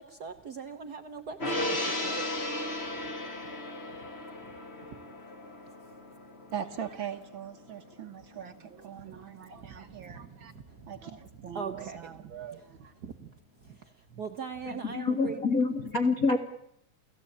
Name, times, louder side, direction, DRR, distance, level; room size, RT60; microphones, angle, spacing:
voice 1, 0.0-2.3 9.9-10.9 11.5-12.1 12.5-12.6 13.0-13.1 13.6-13.8 14.2-15.4, right 6 dB, 90° right, 7 dB, 0.8 m, -40 dB
Gong, 1.4-8.0 8.4-8.5, left 1 dB, 25° left, 1.9 m, -36 dB
voice 2, 6.5-10.5 10.9-12.9, right 8 dB, 55° right, 8 dB, 1.4 m, -41 dB
voice 3, 14.7-16.4, left 3 dB, 50° left, 6 dB, 1.0 m, -27 dB
29.5 x 16.0 x 8.6 m, 0.78 s
omnidirectional pair, 3.4 m